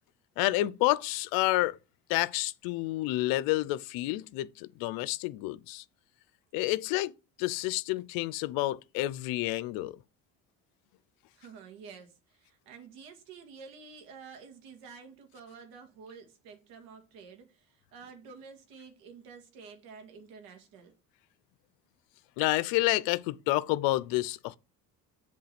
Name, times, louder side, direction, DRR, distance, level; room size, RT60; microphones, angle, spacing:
voice 1, 0.4-1.8 2.1-5.8 6.5-7.1 7.4-9.9 22.4-24.6, left 18 dB, 85° left, 0.6 m, -29 dB
voice 2, 11.3-20.9, right 5 dB, 85° right, 2.1 m, -50 dB
7.6 x 3.7 x 5.9 m
supercardioid pair, 90°, 35 cm